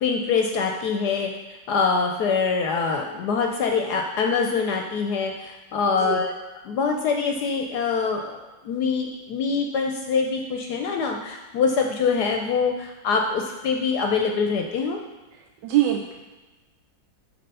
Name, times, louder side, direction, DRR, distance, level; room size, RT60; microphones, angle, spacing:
voice 1, 0.0-6.3 6.6-8.4 8.6-15.0, left 5 dB, 70° left, 2 dB, 1.0 m, -24 dB
voice 2, 15.6-16.2, right 13 dB, 75° right, 1 dB, 1.2 m, -22 dB
8.5 x 3.3 x 5.4 m, 1.2 s
omnidirectional pair, 2.1 m